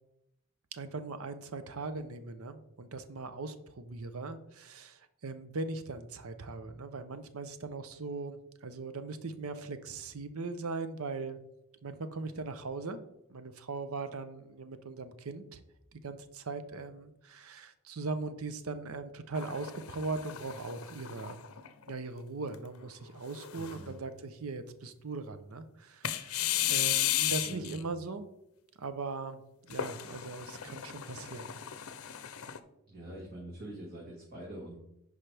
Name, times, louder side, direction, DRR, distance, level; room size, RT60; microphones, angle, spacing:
voice 1, 0.7-11.4 11.8-13.0 13.3-15.6 15.9-21.4 21.9-28.3 28.8-31.5, right 3 dB, 75° right, 10 dB, 0.7 m, -40 dB
sound 1, 19.4-21.9 22.5-22.6 23.3-23.9 26.0-27.8 29.7-32.6, left 12 dB, 70° left, 0.6 m, -34 dB
voice 2, 23.6-23.9 27.5-27.9 32.9-34.8, right 1 dB, 45° right, -4 dB, 1.9 m, -45 dB
10.0 x 5.0 x 3.4 m, 0.85 s
head